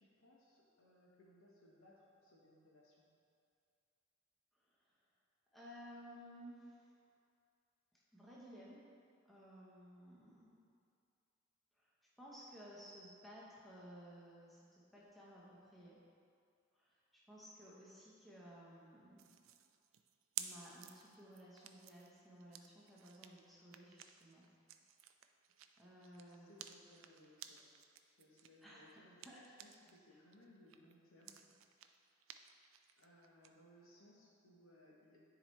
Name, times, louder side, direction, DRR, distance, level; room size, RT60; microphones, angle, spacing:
voice 1, 0.0-3.0 26.0-27.6 28.0-29.3 29.6-31.5 33.0-35.2, left 1 dB, 75° left, -3 dB, 1.1 m, -65 dB
voice 2, 4.5-5.1 5.5-7.1 7.9-8.8 9.2-10.6 11.7-11.9 12.2-16.0 16.7-19.3 20.4-24.5 25.8-26.5 28.6-29.4 29.8-30.2, equal, ahead, -7 dB, 0.9 m, -57 dB
sound 1, 19.2-30.0 30.3-33.5, right 11 dB, 70° right, 0.3 m, -54 dB
9.7 x 4.0 x 3.2 m, 2.3 s
head